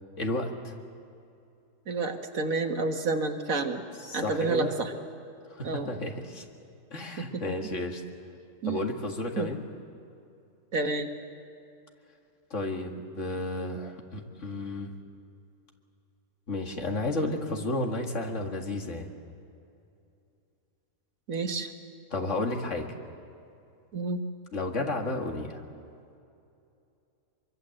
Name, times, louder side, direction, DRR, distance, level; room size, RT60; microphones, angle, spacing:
voice 1, 0.2-0.7 4.0-4.8 5.5-6.4 6.9-8.0 8.6-9.6 12.5-14.9 16.5-19.1 22.1-22.9 24.5-25.6, left 2 dB, 65° left, 3 dB, 2.4 m, -32 dB
voice 2, 1.9-3.8 4.1-4.9 5.6-5.9 8.6-8.8 9.4-9.5 10.7-11.1 21.3-21.7 23.9-24.2, right 3 dB, 80° right, 5 dB, 2.0 m, -29 dB
24.5 x 23.5 x 7.9 m, 2.6 s
omnidirectional pair, 1.4 m